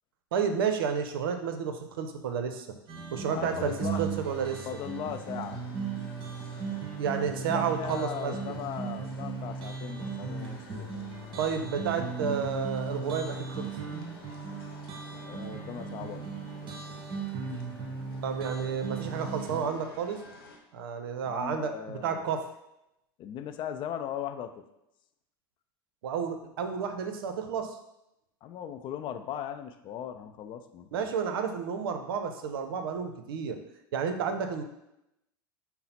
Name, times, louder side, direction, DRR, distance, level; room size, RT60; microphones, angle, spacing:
voice 1, 0.3-2.7 3.1-4.7 7.0-8.4 11.4-13.7 18.2-20.2 20.7-22.4 26.0-27.8 30.9-33.6 33.9-34.6, right 6 dB, 75° right, 7 dB, 0.6 m, -31 dB
sound 1, 2.9-19.6, right 5 dB, 40° right, 0.9 m, -37 dB
voice 2, 3.2-4.0 4.7-5.6 7.5-10.9 15.3-16.3 21.2-22.3 23.2-24.5 28.4-31.1, left 9 dB, 40° left, 8 dB, 0.4 m, -38 dB
sound 2, 3.4-20.6, left 3 dB, 85° left, 0.8 m, -51 dB
5.5 x 2.0 x 4.1 m, 0.85 s
hypercardioid pair, 85°, 12 cm